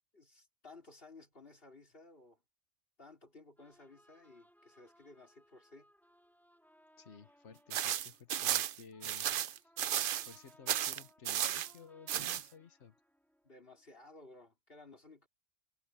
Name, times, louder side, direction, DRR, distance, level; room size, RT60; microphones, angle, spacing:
voice 1, 0.1-2.4 3.0-5.9 13.4-15.3, left 3 dB, 50° left, 3.6 m, -57 dB
sound 1, 3.6-14.1, equal, ahead, 4.4 m, -67 dB
voice 2, 7.0-9.7 10.2-13.0, left 6 dB, 70° left, 1.6 m, -55 dB
sound 2, 7.7-10.4 10.7-11.7 12.1-12.4, right 11 dB, 60° right, 0.6 m, -34 dB
omnidirectional pair, 1.2 m